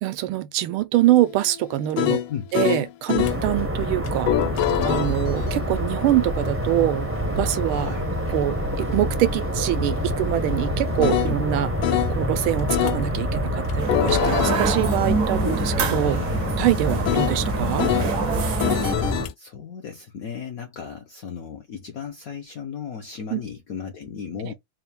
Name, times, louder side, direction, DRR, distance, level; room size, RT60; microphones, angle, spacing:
voice 1, 0.0-2.2 2.5-4.3 4.8-7.1 7.4-7.9 8.3-11.7 12.1-16.2 16.6-17.9 23.3-23.4, right 14 dB, 80° right, 1.5 m, -24 dB
sound 1, 1.0-3.4 4.1-12.2 12.7-13.0 13.7-18.1 18.6-19.3, left 12 dB, 85° left, 1.5 m, -28 dB
sound 2, 3.2-19.3, equal, 15° right, 0.4 m, -27 dB
voice 2, 7.6-8.1 11.0-11.4 16.0-16.5 19.4-24.5, left 7 dB, 65° left, 0.8 m, -35 dB
sound 3, 13.8-18.9, right 4 dB, 60° right, 0.9 m, -27 dB
4.2 x 2.3 x 3.2 m
omnidirectional pair, 2.3 m